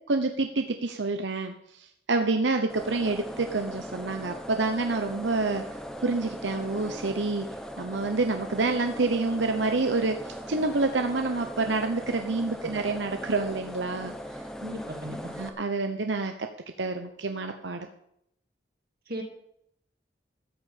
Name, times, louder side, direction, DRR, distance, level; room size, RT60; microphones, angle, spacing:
voice 1, 0.1-5.6 6.0-7.5 7.8-14.4 15.4-16.5 16.8-17.9, right 3 dB, 85° right, 6 dB, 0.9 m, -28 dB
sound 1, 2.7-15.5, equal, 5° left, 1.1 m, -39 dB
voice 2, 14.6-15.3 19.1-19.2, equal, 55° right, 1 dB, 2.8 m, -36 dB
14.0 x 6.4 x 8.6 m, 0.74 s
head